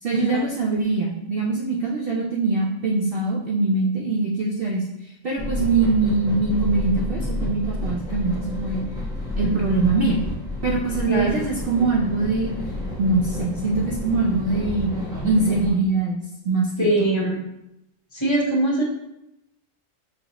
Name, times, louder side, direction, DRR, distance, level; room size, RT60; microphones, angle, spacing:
voice 1, 0.0-8.8 9.4-10.2 10.6-12.5 13.0-14.9 15.2-16.7 17.0-17.1, right 3 dB, 60° right, -2 dB, 0.6 m, -23 dB
sound 1, 5.4-15.7, left 1 dB, 5° right, 0.7 m, -30 dB
voice 2, 11.1-11.4 16.8-17.4 18.1-18.8, right 1 dB, 25° left, -3 dB, 0.9 m, -22 dB
5.7 x 2.6 x 2.9 m, 0.86 s
omnidirectional pair, 1.3 m